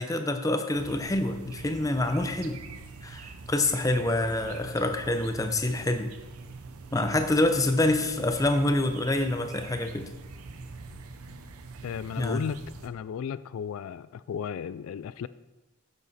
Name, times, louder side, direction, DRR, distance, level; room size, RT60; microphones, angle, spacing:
voice 1, 0.0-2.6 3.0-6.1 6.9-10.1 12.2-12.4, left 1 dB, 15° left, 7 dB, 0.6 m, -26 dB
sound 1, 0.7-12.9, right 4 dB, 90° right, 0.8 m, -44 dB
voice 2, 11.8-15.3, left 7 dB, 75° left, 16 dB, 0.3 m, -35 dB
9.4 x 7.1 x 4.2 m, 1.0 s
head